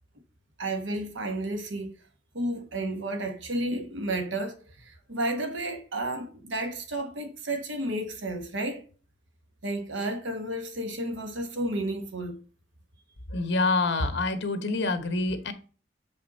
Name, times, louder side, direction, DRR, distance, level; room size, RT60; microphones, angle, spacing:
voice 1, 0.6-2.0 2.3-8.8 9.6-12.4, right 1 dB, 80° right, 1.4 m, -32 dB
voice 2, 13.3-15.5, left 3 dB, 65° left, 1.2 m, -26 dB
7.2 x 5.2 x 4.1 m
head